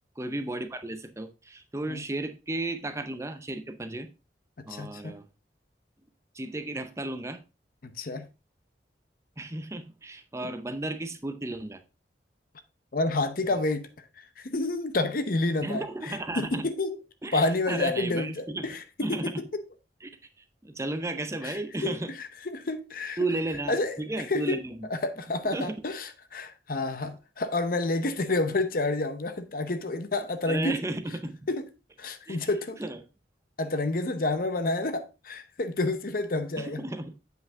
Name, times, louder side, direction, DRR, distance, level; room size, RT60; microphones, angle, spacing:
voice 1, 0.2-4.1 4.7-5.2 6.3-7.4 9.4-11.8 15.6-16.7 17.2-18.7 19.0-19.4 20.0-20.1 20.6-22.1 23.2-24.9 25.5-25.8 30.5-31.3 32.3-32.4 32.8-33.0 36.6-37.2, right 2 dB, 15° right, 0.6 m, -33 dB
voice 2, 4.6-5.2 7.8-8.3 10.4-10.5 12.9-14.0 14.4-17.0 17.3-19.6 21.4-23.2 23.7-24.0 24.3-24.6 24.9-30.8 31.5-31.7 32.0-32.8 33.6-36.8, left 2 dB, 55° left, 0.8 m, -29 dB
7.8 x 5.3 x 3.5 m
head